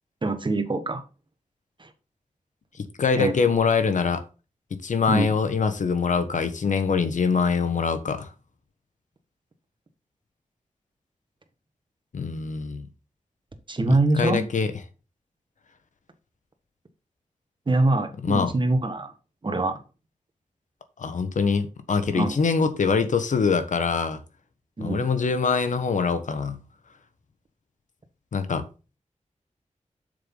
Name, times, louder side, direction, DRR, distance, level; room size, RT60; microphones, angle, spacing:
voice 1, 0.2-1.0 1.8-1.9 3.1-3.3 5.1-5.3 13.7-14.4 17.7-19.1 19.4-19.8 22.1-22.4 24.8-25.0, right 2 dB, 40° right, 1.5 m, -24 dB
voice 2, 2.8-4.2 4.8-8.3 12.1-12.9 13.9-14.7 18.2-18.5 21.0-24.2 24.8-26.6 28.3-28.6, left 5 dB, 80° left, 1.2 m, -24 dB
7.9 x 6.6 x 3.9 m
wide cardioid pair, 75°, 13 cm